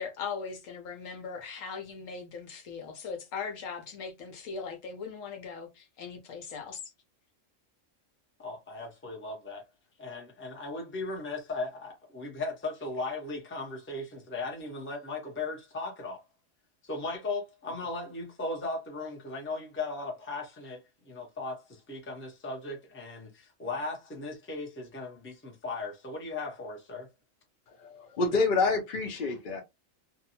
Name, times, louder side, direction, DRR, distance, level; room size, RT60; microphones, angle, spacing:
voice 1, 0.0-6.8, left 5 dB, 75° left, 1.1 m, -39 dB
voice 2, 8.4-9.6 10.0-16.2 16.8-27.1, left 3 dB, 15° left, 0.6 m, -37 dB
voice 3, 27.7-29.6, left 3 dB, 50° left, 0.6 m, -28 dB
2.6 x 2.2 x 2.8 m
omnidirectional pair, 1.4 m